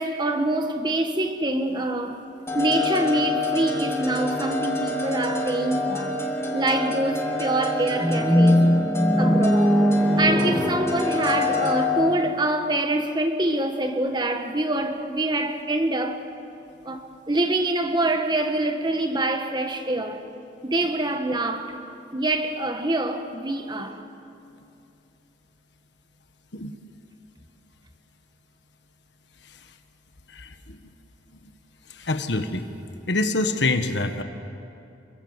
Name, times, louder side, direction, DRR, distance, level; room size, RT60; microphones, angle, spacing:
voice 1, 0.0-2.2 2.5-6.1 6.5-8.7 9.2-9.8 10.2-16.2 16.8-20.3 20.6-21.8 22.1-24.0, right 2 dB, 25° right, 1.7 m, -25 dB
sound 1, 2.5-12.1, left 3 dB, 15° left, 2.8 m, -27 dB
sound 2, 8.0-12.1, equal, ahead, 1.2 m, -21 dB
voice 2, 30.3-30.8 31.9-32.7 33.1-34.2, left 2 dB, 70° left, 1.5 m, -26 dB
28.0 x 23.5 x 8.2 m
head